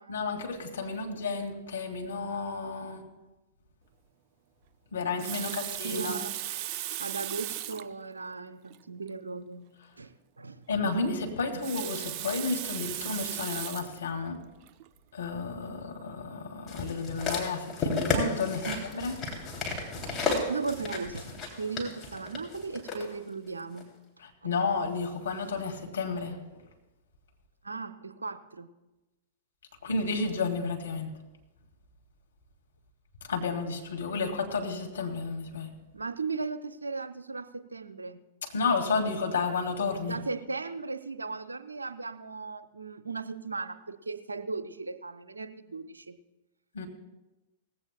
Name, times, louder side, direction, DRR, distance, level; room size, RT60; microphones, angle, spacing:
voice 1, 0.1-3.0 4.9-6.2 10.7-14.4 15.1-18.7 18.9-19.1 24.4-26.4 29.8-31.1 33.3-35.7 38.5-40.2 46.7-46.9, left 4 dB, 65° left, 2 dB, 2.0 m, -31 dB
Water tap faucet, 5.0-7.9 8.7-8.8 9.1-9.2 11.4-14.0 14.7-14.9, right 12 dB, 40° right, 0.4 m, -36 dB
voice 2, 5.8-6.4 7.0-9.7 10.0-10.6 18.6-18.8 20.4-23.9 27.6-28.7 35.9-38.3 40.0-46.2, right 4 dB, 80° right, 12 dB, 0.6 m, -37 dB
sound 1, 16.7-23.0 23.8-23.9, left 3 dB, 20° left, 2.8 m, -33 dB
18.5 x 15.0 x 2.2 m, 1.1 s
figure-of-eight pair, 100°, 0 cm